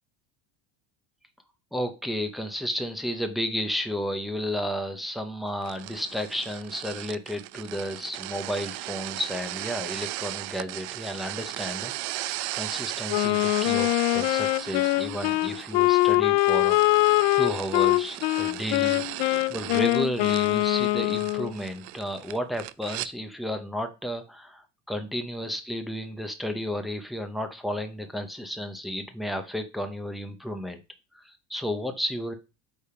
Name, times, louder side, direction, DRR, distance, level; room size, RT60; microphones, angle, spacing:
voice 1, 1.7-16.8 17.4-19.0 19.5-30.8 31.1-32.3, equal, ahead, 6 dB, 0.6 m, -32 dB
sound 1, 5.6-23.1, right 18 dB, 75° right, 0.6 m, -37 dB
Wind instrument woodwind instrument, 13.1-21.5, left 21 dB, 85° left, 0.5 m, -23 dB
8.5 x 3.6 x 5.6 m, 0.28 s
cardioid pair, 165°, 46 cm